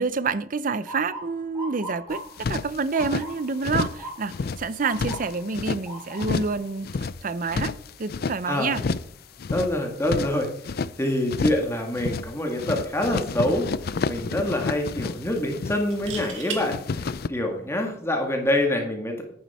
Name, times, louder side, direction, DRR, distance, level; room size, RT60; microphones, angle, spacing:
voice 1, 0.0-7.7 8.0-8.8, right 4 dB, 45° right, 0.6 m, -28 dB
Motor vehicle (road) / Siren, 0.9-12.8 13.2-13.7 14.4-14.7 16.6-16.9 17.4-17.5 17.9-18.6, right 1 dB, 10° right, 3.9 m, -43 dB
sound 1, 2.1-3.3 3.6-4.0 4.3-5.8 6.2-6.6 6.8-8.4 8.7-9.1 9.4-10.9 11.3-11.7 11.9-12.3 12.6-16.3 16.5-17.3, left 4 dB, 50° left, 0.4 m, -30 dB
voice 2, 9.5-10.5 11.0-19.2, left 1 dB, 15° left, 1.8 m, -26 dB
sound 2, 15.8-16.6 18.5-18.7, right 6 dB, 75° right, 1.9 m, -35 dB
10.5 x 9.4 x 4.2 m
head